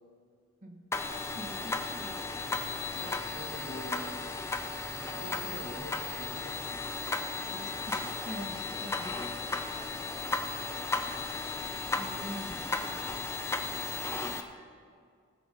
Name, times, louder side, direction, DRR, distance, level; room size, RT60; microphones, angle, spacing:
voice 1, 0.6-2.1 7.5-9.2 9.6-10.2 11.9-12.7, equal, 40° right, 3 dB, 1.4 m, -45 dB
sound 1, 0.9-14.4, left 3 dB, 10° left, 0.5 m, -35 dB
voice 2, 2.9-4.5 4.9-6.7, left 1 dB, 90° left, -2 dB, 2.2 m, -45 dB
17.5 x 7.1 x 5.1 m, 2.1 s
head